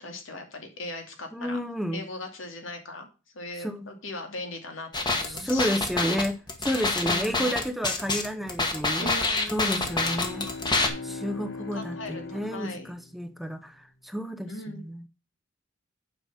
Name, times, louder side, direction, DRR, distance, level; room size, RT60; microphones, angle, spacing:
voice 1, 0.0-1.6 1.9-3.1 3.3-5.8 7.0-7.5 9.0-9.8 11.6-12.9 14.5-14.8, left 2 dB, 85° left, 2.5 m, -39 dB
voice 2, 1.3-2.0 3.6-3.9 5.2-9.1 9.5-10.5 11.0-15.0, equal, ahead, 0.6 m, -31 dB
sound 1, 4.9-10.9, left 3 dB, 20° left, 1.4 m, -27 dB
sound 2, 9.5-13.6, left 3 dB, 65° left, 1.2 m, -40 dB
9.0 x 5.3 x 5.5 m
head